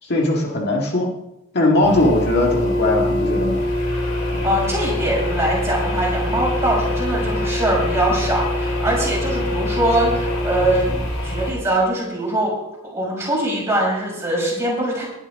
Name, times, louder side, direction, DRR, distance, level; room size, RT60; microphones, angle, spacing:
voice 1, 0.0-1.1 1.5-3.6 4.3-4.4, left 2 dB, 50° left, -1 dB, 1.8 m, -19 dB
sound 1, 1.8-11.5, left 1 dB, 70° left, 3.8 m, -23 dB
voice 2, 4.4-12.5 12.9-15.0, right 1 dB, 10° right, -5 dB, 6.5 m, -22 dB
20.0 x 10.5 x 3.6 m, 0.88 s
head